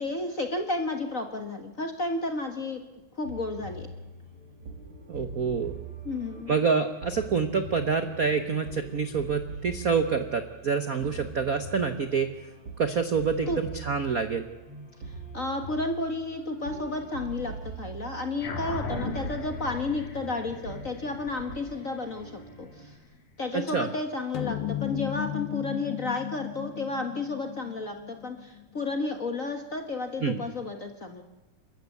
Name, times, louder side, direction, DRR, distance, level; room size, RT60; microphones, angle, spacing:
voice 1, 0.0-2.8 3.2-3.9 6.0-6.5 13.5-13.6 15.0-22.3 22.6-22.9 23.4-31.2, left 2 dB, 40° left, 5 dB, 1.2 m, -32 dB
sound 1, 3.2-23.0, right 3 dB, 45° right, 3.3 m, -43 dB
voice 2, 5.1-5.8 6.5-12.3 12.8-14.5 23.5-23.9 30.2-30.4, right 5 dB, 65° right, 9 dB, 0.8 m, -27 dB
sound 2, 18.4-23.2, left 3 dB, 85° left, 3.9 m, -37 dB
sound 3, 24.3-29.0, left 15 dB, 70° left, 1.4 m, -35 dB
29.0 x 13.5 x 8.4 m, 1.1 s
omnidirectional pair, 3.4 m